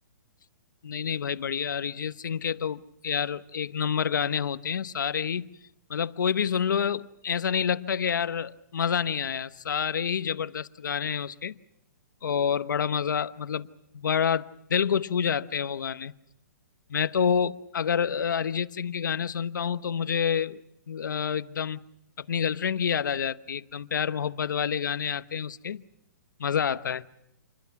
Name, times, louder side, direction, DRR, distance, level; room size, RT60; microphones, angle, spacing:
voice 1, 0.8-5.6 5.9-11.6 12.2-13.7 13.9-16.1 16.9-20.6 20.9-21.8 22.2-25.8 26.4-27.0, left 7 dB, 85° left, 1.0 m, -28 dB
27.5 x 22.0 x 5.9 m
hypercardioid pair, 165°, 10 cm